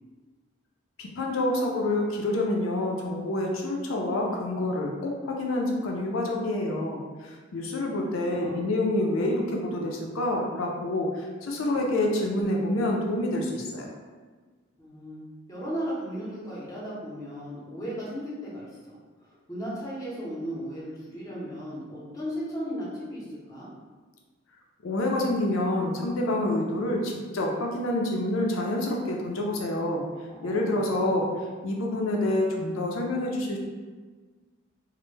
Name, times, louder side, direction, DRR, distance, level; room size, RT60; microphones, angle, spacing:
voice 1, 1.0-13.9 24.8-30.0 30.4-31.3 31.6-33.6, left 1 dB, 85° left, 0 dB, 0.4 m, -27 dB
voice 2, 8.2-8.7 14.8-15.2 15.5-23.7 30.3-30.9, equal, 20° left, -7 dB, 0.7 m, -36 dB
2.1 x 2.0 x 3.1 m, 1.4 s
head